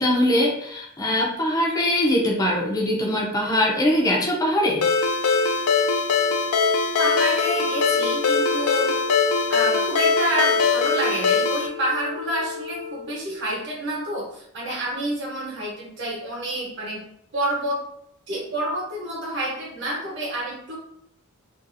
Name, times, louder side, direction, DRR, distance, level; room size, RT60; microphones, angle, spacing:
voice 1, 0.0-4.8, left 1 dB, 15° left, -2 dB, 0.4 m, -22 dB
Ringtone, 4.8-11.7, left 4 dB, 85° left, 0.4 m, -21 dB
Wind instrument woodwind instrument, 6.9-13.2, left 6 dB, 90° right, 1.0 m, -34 dB
voice 2, 7.0-8.9 9.5-17.0 17.3-17.8 18.3-20.7, right 1 dB, 55° right, -3 dB, 1.0 m, -28 dB
2.7 x 2.3 x 2.5 m, 0.72 s
head